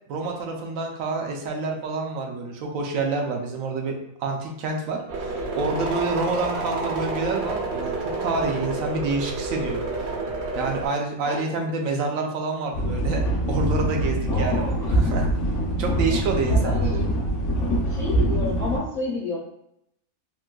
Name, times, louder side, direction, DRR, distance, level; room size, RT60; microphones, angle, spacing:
voice 1, 0.1-9.8 10.5-15.3 15.8-17.0, right 3 dB, 80° right, 2 dB, 1.0 m, -28 dB
sound 1, 5.1-10.9, right 3 dB, 60° right, 0.8 m, -29 dB
voice 2, 11.2-11.5 14.3-14.8 16.5-17.1 17.9-19.4, left 2 dB, 45° left, -6 dB, 0.5 m, -30 dB
sound 2, 12.7-18.8, equal, 65° left, 0.9 m, -24 dB
3.7 x 2.5 x 2.3 m, 0.76 s
omnidirectional pair, 1.4 m